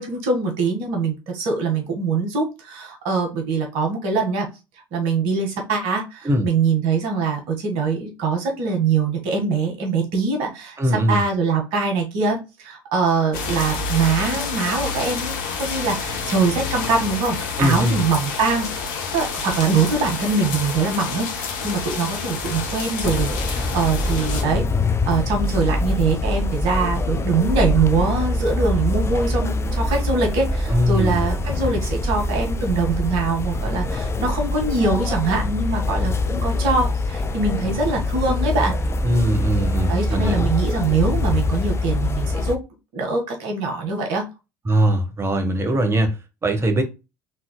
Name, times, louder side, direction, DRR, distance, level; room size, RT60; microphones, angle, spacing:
voice 1, 0.0-4.5 4.9-10.8 11.1-24.6 25.1-38.7 39.9-42.6 42.9-44.2, right 4 dB, 60° right, 1.7 m, -23 dB
voice 2, 10.8-11.2 17.6-18.0 30.7-31.2 39.0-40.5 44.6-46.8, equal, 25° right, 1.3 m, -21 dB
sound 1, 13.3-24.4, left 4 dB, 65° left, 1.1 m, -28 dB
sound 2, 23.0-42.5, left 2 dB, 25° left, 0.6 m, -24 dB
4.4 x 3.8 x 2.2 m
figure-of-eight pair, 65°, 11 cm